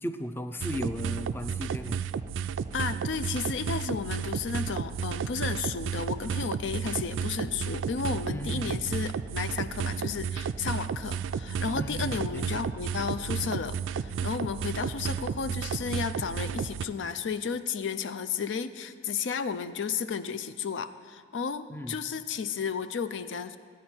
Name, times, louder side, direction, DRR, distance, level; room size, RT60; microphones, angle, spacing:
voice 1, 0.0-2.0 8.3-8.8 11.7-12.5 21.7-22.0, equal, 10° left, 7 dB, 0.4 m, -36 dB
sound 1, 0.6-16.9, right 7 dB, 75° right, 0.3 m, -32 dB
voice 2, 2.7-23.6, left 6 dB, 70° left, 11 dB, 0.4 m, -33 dB
14.0 x 9.4 x 4.4 m, 2.1 s
head